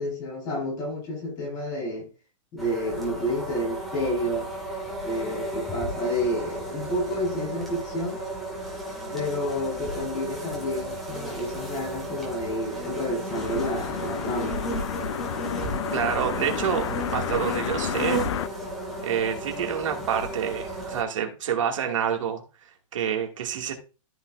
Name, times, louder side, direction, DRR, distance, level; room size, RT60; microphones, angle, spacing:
voice 1, 0.0-2.1 2.5-4.5 5.0-8.2 9.1-14.6, equal, 25° left, 4.2 m, -30 dB
sound 1, 2.6-21.0, right 1 dB, ahead, 2.1 m, -34 dB
sound 2, 13.3-18.5, left 11 dB, 60° left, 0.4 m, -31 dB
voice 2, 15.9-18.2 19.0-23.7, right 8 dB, 70° right, 2.3 m, -28 dB
13.5 x 5.7 x 2.6 m
supercardioid pair, 175°, 17 cm